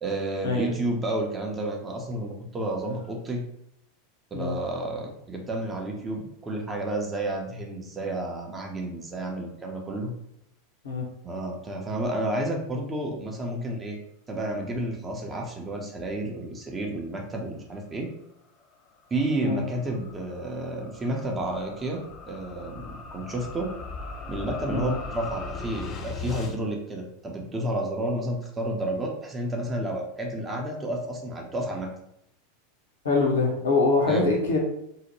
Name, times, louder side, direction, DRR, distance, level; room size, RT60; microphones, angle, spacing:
voice 1, 0.0-3.4 4.3-10.1 11.2-14.0 14.3-18.1 19.1-23.7 24.3-31.9 34.1-34.3, right 1 dB, 20° right, 0 dB, 0.6 m, -31 dB
sound 1, 18.7-26.5, left 4 dB, 35° left, 0.4 m, -39 dB
voice 2, 33.0-34.6, left 3 dB, 70° left, -1 dB, 0.8 m, -23 dB
2.7 x 2.1 x 3.0 m, 0.77 s
figure-of-eight pair, 85°, 0 cm